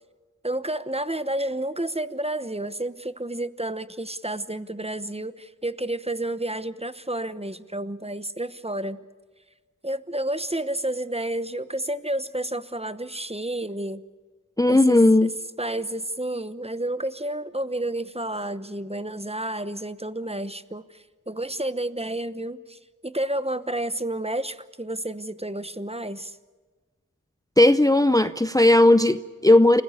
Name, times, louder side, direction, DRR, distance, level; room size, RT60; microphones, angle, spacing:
voice 1, 0.4-9.0 9.8-14.0 14.7-15.3 15.6-26.4, right 1 dB, 20° right, 13 dB, 1.0 m, -30 dB
voice 2, 14.6-15.3 27.6-29.8, left 1 dB, 10° left, 12 dB, 0.6 m, -16 dB
28.5 x 16.0 x 8.3 m, 1.4 s
wide cardioid pair, 45°, 32 cm